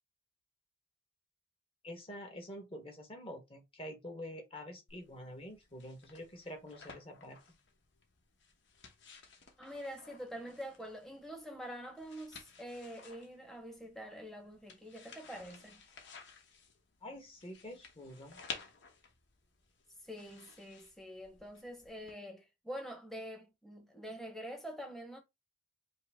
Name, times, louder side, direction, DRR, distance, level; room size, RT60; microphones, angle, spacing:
voice 1, 1.8-7.4 17.0-18.4, equal, 30° left, 1.2 m, -47 dB
sound 1, 4.9-22.1, left 5 dB, 70° left, 0.9 m, -54 dB
voice 2, 9.6-15.8 20.0-25.2, equal, ahead, 0.9 m, -46 dB
5.5 x 2.0 x 3.5 m
head